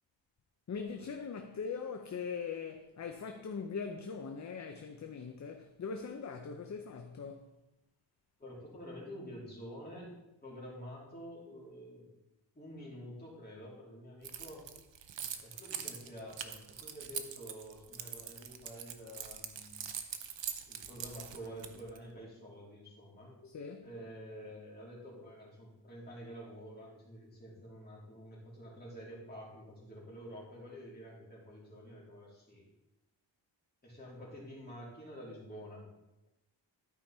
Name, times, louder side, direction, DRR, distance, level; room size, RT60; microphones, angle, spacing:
voice 1, 0.7-7.5 23.4-23.9, left 5 dB, 40° left, 0.7 m, -41 dB
voice 2, 8.4-10.1 10.4-12.1 12.5-14.7 15.4-19.9 20.7-23.3 23.8-32.6 33.8-35.9, equal, 20° left, 3.3 m, -48 dB
Keys jangling, 14.2-22.0, right 8 dB, 70° right, 0.9 m, -42 dB
12.0 x 5.2 x 4.3 m
wide cardioid pair, 135°, 45 cm